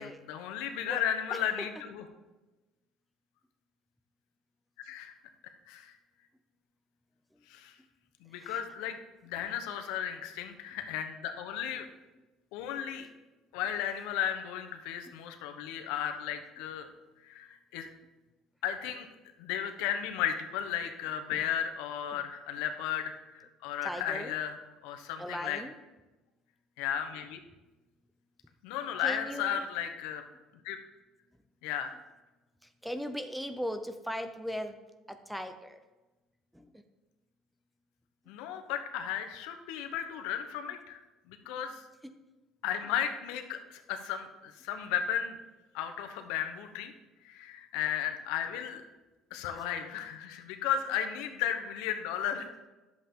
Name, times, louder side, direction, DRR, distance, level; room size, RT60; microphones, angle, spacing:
voice 1, 0.0-2.0 4.8-5.1 5.7-5.9 7.5-7.7 8.2-9.0 9.2-11.9 12.5-13.1 13.5-16.9 17.2-17.9 18.6-19.1 19.4-24.6 24.8-25.6 26.8-27.4 28.6-30.2 30.6-30.8 31.6-31.9 38.3-41.0 41.3-41.8 42.6-45.4 45.7-46.9 47.2-48.8 49.3-52.5, left 9 dB, 90° left, 6 dB, 1.0 m, -34 dB
voice 2, 1.3-1.7 8.3-8.6 9.4-9.5 21.3-21.5 22.1-22.2 23.8-24.4 25.2-25.8 29.0-29.7 32.6-34.8 35.1-35.8 36.5-36.8 42.0-42.1, equal, ahead, 8 dB, 0.7 m, -39 dB
11.0 x 7.4 x 3.7 m, 1.1 s
cardioid pair, 125°, 0 cm